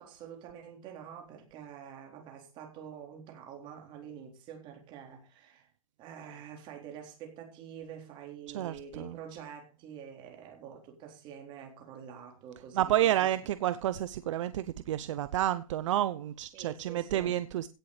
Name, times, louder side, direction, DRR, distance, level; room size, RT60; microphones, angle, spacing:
voice 1, 0.0-5.7 6.0-13.3 16.5-17.3, right 8 dB, 25° right, 3.9 m, -47 dB
voice 2, 8.5-9.1 12.7-17.7, right 13 dB, 60° right, 0.8 m, -30 dB
17.0 x 7.1 x 5.0 m
supercardioid pair, 165°, 18 cm